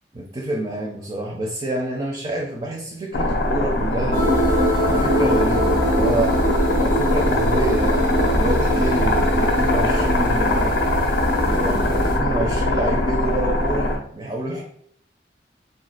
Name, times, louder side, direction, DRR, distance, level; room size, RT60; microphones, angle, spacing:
voice 1, 0.1-4.2 4.7-6.4 6.8-10.8 11.4-14.6, right 1 dB, 30° right, 0 dB, 0.4 m, -27 dB
sound 1, 3.1-14.0, left 1 dB, 65° left, 0.5 m, -21 dB
sound 2, 4.1-12.2, right 1 dB, 85° right, 1.0 m, -23 dB
2.5 x 2.3 x 3.7 m, 0.66 s
head